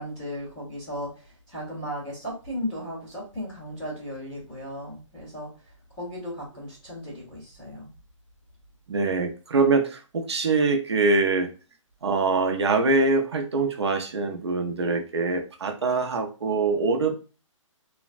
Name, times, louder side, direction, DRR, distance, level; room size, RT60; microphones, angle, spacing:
voice 1, 0.0-5.5 6.0-7.9, equal, 5° left, -12 dB, 0.5 m, -36 dB
voice 2, 8.9-11.5 12.0-17.1, right 3 dB, 55° right, 4 dB, 0.5 m, -24 dB
3.2 x 2.0 x 2.4 m, 0.34 s
hypercardioid pair, 180°, 17 cm